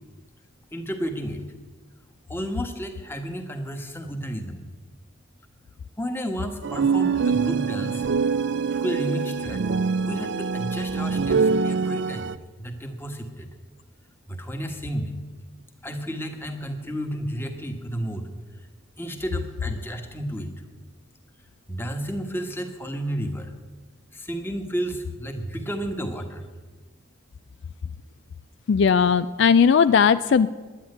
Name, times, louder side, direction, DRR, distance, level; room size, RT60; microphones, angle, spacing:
voice 1, 0.7-1.4 2.3-4.6 6.0-8.1 8.8-9.6 10.1-12.3 12.6-13.5 14.3-15.1 15.8-18.3 19.0-20.5 21.7-23.5 24.1-26.5, equal, 10° left, 4 dB, 1.3 m, -32 dB
sound 1, 6.6-12.3, right 5 dB, 60° right, 0.4 m, -24 dB
voice 2, 28.7-30.5, left 6 dB, 60° left, 13 dB, 0.3 m, -17 dB
10.5 x 10.0 x 9.5 m, 1.3 s
head